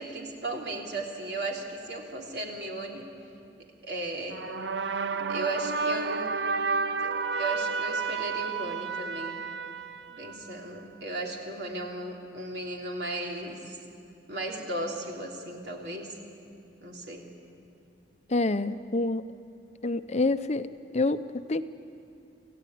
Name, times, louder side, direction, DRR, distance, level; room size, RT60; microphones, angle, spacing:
voice 1, 0.0-3.1 3.8-4.4 5.1-6.3 7.0-9.4 10.1-13.8 14.3-16.2 16.8-17.2, right 2 dB, 65° right, 0 dB, 3.3 m, -36 dB
sound 1, 4.3-10.7, right 4 dB, 90° right, 0.7 m, -31 dB
voice 2, 18.3-19.2 19.8-20.7 20.9-21.6, left 2 dB, 40° left, 11 dB, 0.7 m, -27 dB
27.0 x 15.5 x 9.4 m, 2.5 s
head